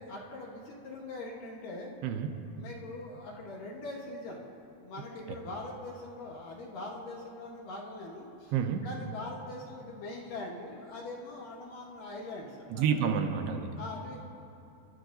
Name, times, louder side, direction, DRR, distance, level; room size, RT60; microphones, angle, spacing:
voice 1, 0.0-1.9 2.6-4.5 4.8-8.5 8.8-13.0 13.8-14.3, left 2 dB, 65° left, -2 dB, 2.4 m, -42 dB
voice 2, 2.0-2.4 8.5-8.9 12.7-13.7, right 7 dB, 85° right, 5 dB, 2.7 m, -29 dB
27.5 x 12.0 x 2.6 m, 2.6 s
omnidirectional pair, 4.8 m